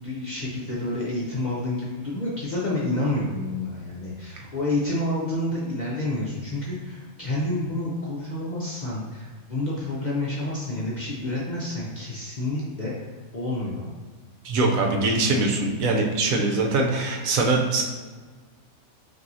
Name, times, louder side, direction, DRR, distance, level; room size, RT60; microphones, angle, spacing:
voice 1, 0.0-13.9 16.2-16.3, left 1 dB, 45° left, -6 dB, 0.6 m, -29 dB
voice 2, 14.4-17.8, right 3 dB, 75° right, 1 dB, 1.0 m, -22 dB
5.7 x 2.7 x 2.6 m, 1.4 s
omnidirectional pair, 1.5 m